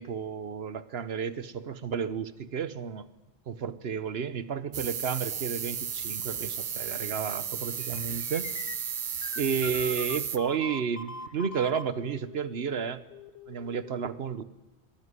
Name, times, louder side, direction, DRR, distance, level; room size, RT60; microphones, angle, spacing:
voice 1, 0.0-3.1 3.5-8.5 9.4-13.0 13.5-14.4, right 7 dB, 70° right, 14 dB, 1.2 m, -32 dB
sound 1, 4.7-10.4, right 7 dB, 50° right, 0.9 m, -34 dB
sound 2, 7.8-13.9, left 3 dB, 60° left, 1.3 m, -43 dB
23.0 x 13.0 x 9.8 m, 1.1 s
omnidirectional pair, 1.1 m